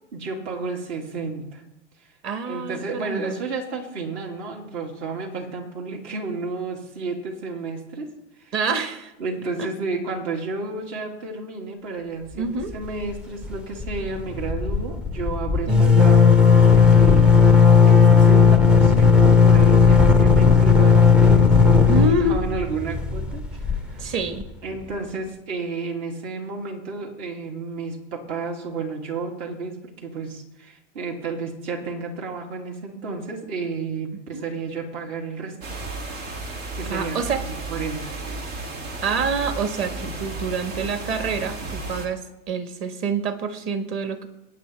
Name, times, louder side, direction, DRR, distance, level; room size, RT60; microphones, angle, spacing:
voice 1, 0.1-1.6 2.4-8.1 8.4-8.5 9.2-12.5 12.7-24.0 24.6-35.6 36.7-38.4, right 4 dB, 60° right, 0 dB, 3.0 m, -32 dB
voice 2, 2.2-3.4 8.5-9.1 9.6-9.7 12.3-12.7 15.7-15.9 21.9-22.4 24.0-24.5 34.3-34.4 36.9-37.4 39.0-44.3, right 3 dB, 35° right, 8 dB, 1.5 m, -27 dB
sound 1, 12.6-13.1 13.4-13.5 13.8-24.5, left 5 dB, 5° right, 0.4 m, -15 dB
sound 2, 35.6-42.1, right 2 dB, 85° right, 2.9 m, -33 dB
21.5 x 9.1 x 3.5 m, 0.92 s
supercardioid pair, 135°, 38 cm